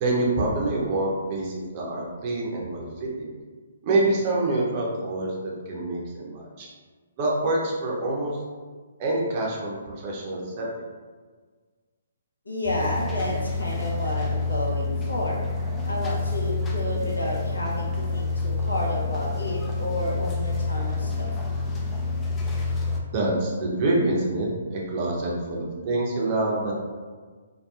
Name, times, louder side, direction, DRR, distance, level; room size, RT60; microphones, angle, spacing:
voice 1, 0.0-3.3 3.8-6.7 7.2-8.3 9.0-10.7 23.1-26.7, right 2 dB, 35° right, -3 dB, 0.6 m, -26 dB
voice 2, 12.5-15.4 15.8-21.3, left 1 dB, 80° left, -3 dB, 0.7 m, -30 dB
sound 1, 12.6-23.0, left 3 dB, 15° left, 0.3 m, -28 dB
2.8 x 2.2 x 2.3 m, 1.5 s
figure-of-eight pair, 130°, 0 cm